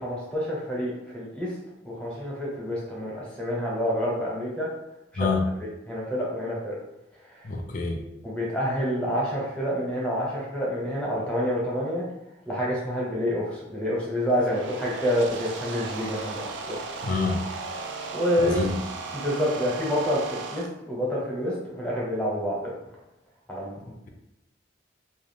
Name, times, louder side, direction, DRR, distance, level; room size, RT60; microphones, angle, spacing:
voice 1, 0.0-1.5 1.8-4.7 5.2-5.3 5.6-6.7 7.2-7.5 8.2-12.0 12.5-16.8 18.1-18.7 19.1-22.7 23.5-23.9, equal, 5° left, -5 dB, 0.8 m, -28 dB
voice 2, 5.2-5.5 7.4-8.0 17.0-17.4 18.4-18.7, left 3 dB, 45° left, 2 dB, 0.4 m, -26 dB
sound 1, 14.2-20.7, right 4 dB, 80° right, 0.4 m, -36 dB
2.4 x 2.3 x 3.3 m, 0.89 s
head